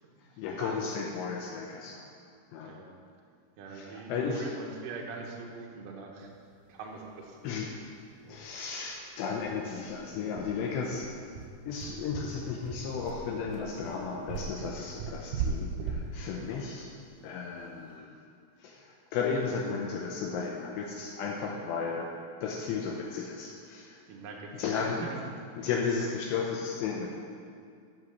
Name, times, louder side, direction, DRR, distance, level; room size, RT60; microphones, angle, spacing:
voice 1, 0.4-2.1 2.5-2.7 3.7-4.5 7.4-7.7 8.3-11.1 11.7-16.9 17.2-18.2 18.6-22.1 22.4-24.0 24.5-25.0 25.6-27.2, left 5 dB, 80° left, -1 dB, 2.8 m, -34 dB
voice 2, 2.6-3.0 3.6-6.3 6.7-7.4 8.2-8.4 16.2-16.5 24.1-25.2 25.6-25.7, right 4 dB, 70° right, 0 dB, 2.1 m, -43 dB
sound 1, 7.5-7.6 7.9-8.0 8.3-8.5 8.8-8.9 9.4-17.8, right 5 dB, 90° right, 1.9 m, -38 dB
7.9 x 7.0 x 6.5 m, 2.3 s
omnidirectional pair, 5.1 m